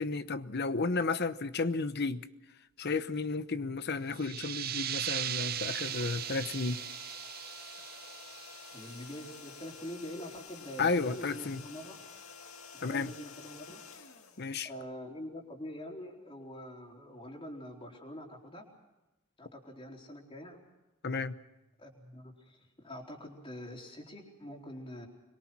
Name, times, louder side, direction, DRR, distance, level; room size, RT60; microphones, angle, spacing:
voice 1, 0.0-2.3 2.8-6.8 10.8-11.6 12.8-13.1 14.4-14.7 21.0-21.4, left 4 dB, 50° left, 0.9 m, -32 dB
sound 1, 4.1-9.5, right 11 dB, 45° right, 0.7 m, -38 dB
sound 2, 5.1-15.1, left 6 dB, 80° left, 2.1 m, -50 dB
voice 2, 8.7-12.0 12.7-13.8 14.6-18.7 19.4-20.6 21.8-25.1, equal, 25° left, 4.0 m, -45 dB
25.5 x 22.5 x 6.1 m
head